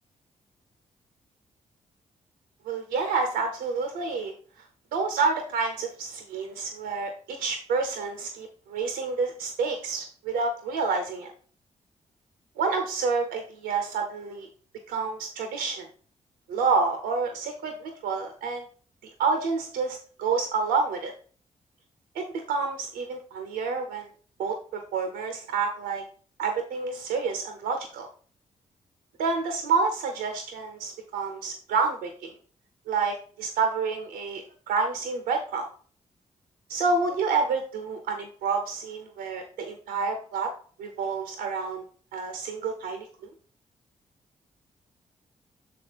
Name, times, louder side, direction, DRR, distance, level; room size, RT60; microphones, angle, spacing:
voice 1, 2.6-4.3 4.9-11.3 12.6-14.5 14.9-15.9 16.5-18.6 19.2-21.1 22.1-24.0 24.4-26.0 26.4-28.1 29.2-32.3 32.9-35.7 36.7-40.5 40.8-41.8 42.1-43.1, right 4 dB, 85° right, 5 dB, 0.8 m, -28 dB
6.4 x 4.2 x 4.6 m, 0.43 s
hypercardioid pair, 40°, 16 cm